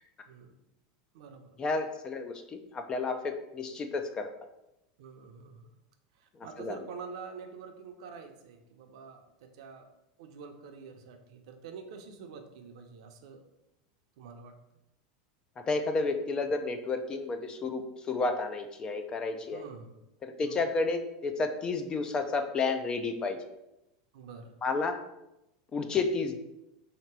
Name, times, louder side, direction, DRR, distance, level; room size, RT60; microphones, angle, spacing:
voice 1, 0.3-0.6 1.1-1.6 5.0-5.8 6.1-9.9 10.2-13.4 14.2-14.6 19.5-20.0 20.4-20.6 24.1-24.5, right 5 dB, 75° right, 5 dB, 0.7 m, -47 dB
voice 2, 1.6-4.3 6.6-6.8 15.6-19.6 20.2-23.4 24.6-25.0 25.7-26.4, left 3 dB, 25° left, 6 dB, 0.5 m, -31 dB
3.8 x 2.9 x 4.6 m, 0.89 s
supercardioid pair, 135°, 3 cm